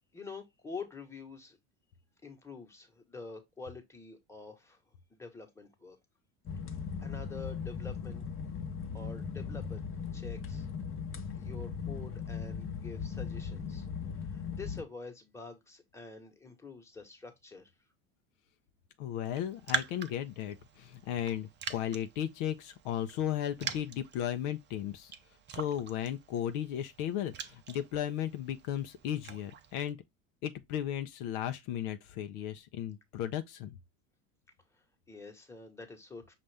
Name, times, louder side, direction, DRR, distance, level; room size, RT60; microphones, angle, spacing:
voice 1, 0.1-1.6 2.2-4.8 5.1-6.0 6.7-8.2 8.9-9.8 10.1-10.7 11.3-13.9 14.2-17.7 34.7-36.4, left 4 dB, 5° left, 1.2 m, -47 dB
sound 1, 6.5-14.8, left 6 dB, 35° left, 0.8 m, -38 dB
voice 2, 19.0-25.1 25.5-30.0 30.4-33.8, left 10 dB, 65° left, 0.6 m, -35 dB
Raindrop, 19.2-29.9, right 7 dB, 30° right, 0.6 m, -43 dB
5.6 x 2.5 x 3.3 m
supercardioid pair, 95°, 38 cm